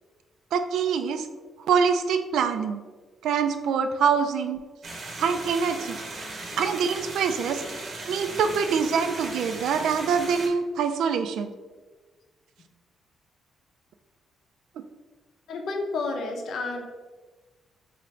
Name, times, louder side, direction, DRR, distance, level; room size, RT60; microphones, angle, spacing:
voice 1, 0.5-1.3 1.6-2.8 3.2-4.6 5.2-6.0 6.6-7.6 8.1-11.5, right 6 dB, 80° right, 8 dB, 0.3 m, -25 dB
sound 1, 4.8-10.5, right 2 dB, 35° right, 0.8 m, -37 dB
voice 2, 15.5-16.8, left 3 dB, 60° left, 3 dB, 0.6 m, -30 dB
4.6 x 2.5 x 3.2 m, 1.3 s
cardioid pair, 160°, 0 cm